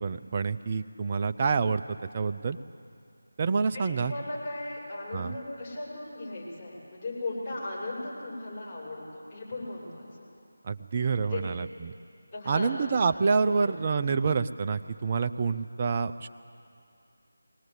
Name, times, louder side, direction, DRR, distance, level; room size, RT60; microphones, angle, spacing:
voice 1, 0.0-2.6 3.4-4.1 5.1-5.3 10.6-11.9 12.5-16.3, right 5 dB, 30° right, 9 dB, 0.5 m, -27 dB
voice 2, 3.7-10.1 11.2-11.4 12.3-12.9 13.4-13.7, left 2 dB, 30° left, -5 dB, 6.6 m, -37 dB
21.5 x 18.5 x 8.2 m, 2.5 s
figure-of-eight pair, 165°, 0 cm